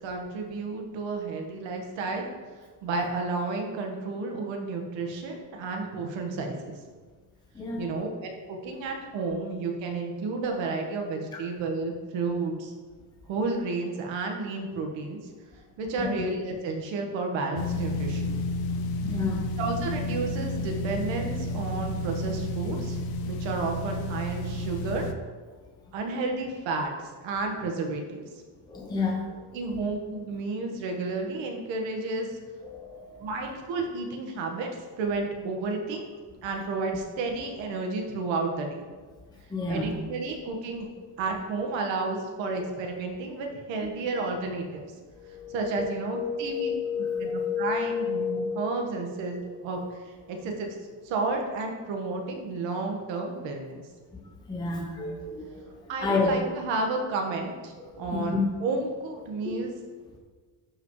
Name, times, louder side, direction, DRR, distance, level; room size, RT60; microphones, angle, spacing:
voice 1, 0.0-2.3 2.8-6.8 7.8-12.7 13.3-15.3 15.8-18.4 19.6-23.0 23.3-25.1 25.9-28.2 29.5-32.3 33.2-34.7 35.0-36.0 36.4-38.8 39.7-40.9 41.2-44.8 45.5-50.7 51.0-53.8 55.9-59.7, right 3 dB, 80° right, 2 dB, 1.5 m, -31 dB
voice 2, 7.6-7.9 16.0-16.1 19.0-19.5 28.7-29.4 32.6-33.3 39.5-39.9 45.1-45.9 46.1-48.8 54.5-55.6 56.0-56.3 57.9-58.4 59.4-59.7, left 4 dB, 10° left, 0 dB, 0.6 m, -30 dB
sound 1, 17.6-25.1, left 1 dB, 55° left, 0.7 m, -31 dB
11.5 x 5.2 x 3.1 m, 1.4 s
cardioid pair, 165°, 44 cm